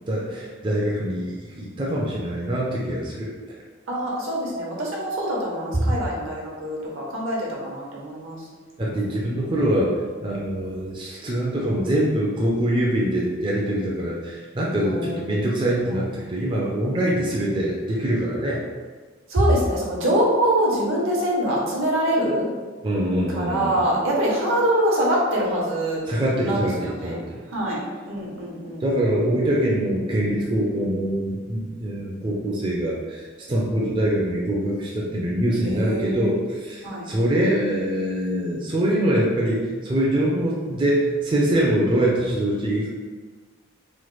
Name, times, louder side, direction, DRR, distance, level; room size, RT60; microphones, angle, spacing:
voice 1, 0.1-3.6 5.7-5.8 8.8-18.6 22.8-23.8 26.1-27.3 27.6-27.7 28.8-42.9, right 1 dB, 25° right, -4 dB, 0.4 m, -24 dB
voice 2, 3.9-8.4 8.9-9.1 14.8-15.2 15.9-16.0 17.3-17.4 19.3-22.5 23.3-26.0 26.4-27.2 27.5-28.9 35.6-36.4 36.8-37.1, right 1 dB, 75° right, -3 dB, 0.8 m, -24 dB
3.0 x 2.2 x 3.1 m, 1.4 s
head